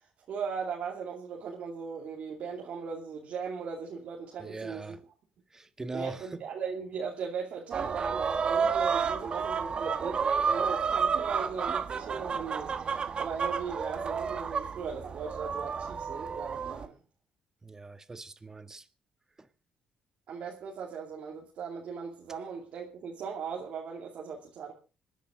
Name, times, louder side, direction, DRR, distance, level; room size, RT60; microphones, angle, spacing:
voice 1, 0.3-5.0 5.9-17.0 20.3-24.7, right 6 dB, 65° right, 2.6 m, -38 dB
voice 2, 4.4-5.0 5.5-6.4 17.6-18.9 19.4-19.5, right 2 dB, 20° right, 1.5 m, -41 dB
sound 1, 7.7-16.8, right 6 dB, 45° right, 1.3 m, -31 dB
26.0 x 10.0 x 3.7 m
cardioid pair, 95°, 2 cm